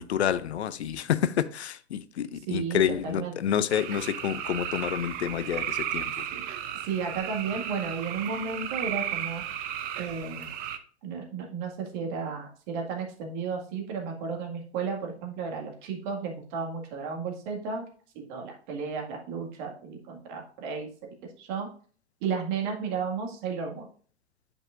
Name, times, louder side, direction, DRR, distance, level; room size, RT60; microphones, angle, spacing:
voice 1, 0.0-6.3, left 9 dB, 75° left, 0.6 m, -28 dB
voice 2, 2.5-3.5 6.3-6.5 6.8-9.4 10.0-10.5 11.0-17.8 18.2-20.9 21.4-21.7 22.2-23.9, right 5 dB, 45° right, 1.9 m, -33 dB
sound 1, 3.7-10.8, right 10 dB, 25° right, 0.6 m, -34 dB
9.5 x 5.4 x 2.5 m
figure-of-eight pair, 105°, 34 cm